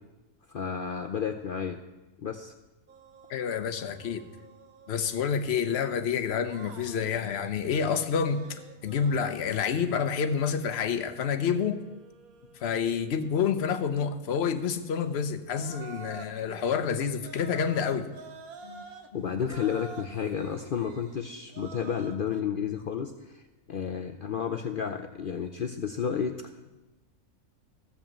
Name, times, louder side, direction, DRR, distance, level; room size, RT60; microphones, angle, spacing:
voice 1, 0.5-1.8 2.2-2.5 18.6-18.8 19.1-23.4 23.7-26.4, left 7 dB, 70° left, 6 dB, 0.5 m, -31 dB
sound 1, 2.9-5.3 6.3-14.2 15.4-22.4, right 4 dB, 75° right, 1.3 m, -49 dB
voice 2, 3.3-4.2 4.9-11.8 12.6-18.1, left 7 dB, 55° left, 9 dB, 0.9 m, -28 dB
14.0 x 5.5 x 7.3 m, 1.1 s
omnidirectional pair, 1.5 m